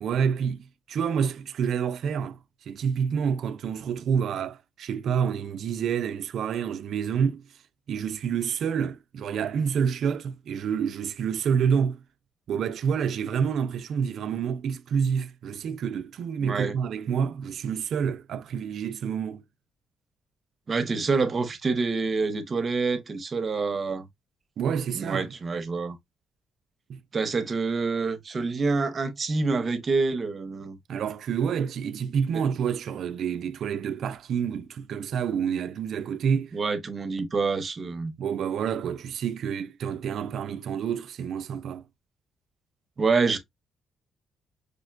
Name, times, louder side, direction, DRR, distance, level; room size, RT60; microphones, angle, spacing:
voice 1, 0.0-2.4 2.7-7.4 7.9-12.0 12.5-19.4 24.6-25.3 26.9-27.0 30.9-36.5 38.2-41.8, right 7 dB, 70° right, 0.4 m, -28 dB
voice 2, 16.4-16.7 20.7-24.1 24.9-26.0 27.1-30.8 32.3-32.4 36.5-38.1 43.0-43.4, right 4 dB, 40° right, 0.7 m, -27 dB
5.0 x 2.1 x 2.4 m
cardioid pair, 90°, 0 cm